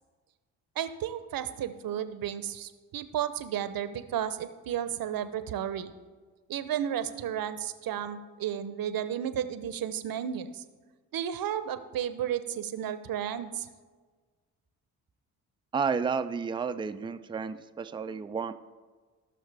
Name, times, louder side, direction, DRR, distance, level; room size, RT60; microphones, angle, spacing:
voice 1, 0.8-5.9 6.5-10.6 11.1-13.7, right 10 dB, 50° right, 12 dB, 0.8 m, -33 dB
voice 2, 15.7-18.5, right 5 dB, 10° right, 9 dB, 0.4 m, -31 dB
17.5 x 6.3 x 3.4 m, 1.4 s
hypercardioid pair, 40°, 46 cm